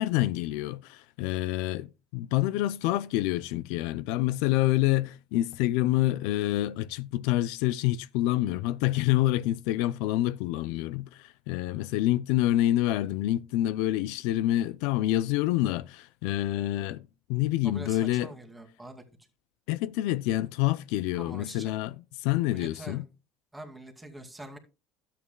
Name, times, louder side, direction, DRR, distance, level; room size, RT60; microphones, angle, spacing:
voice 1, 0.0-17.0 17.3-18.3 19.7-23.0, left 15 dB, 75° left, 0.4 m, -27 dB
voice 2, 17.6-19.0 21.1-21.7 22.5-23.0 23.5-24.6, right 1 dB, 10° right, 2.3 m, -44 dB
12.5 x 8.5 x 2.2 m
supercardioid pair, 100°, 0 cm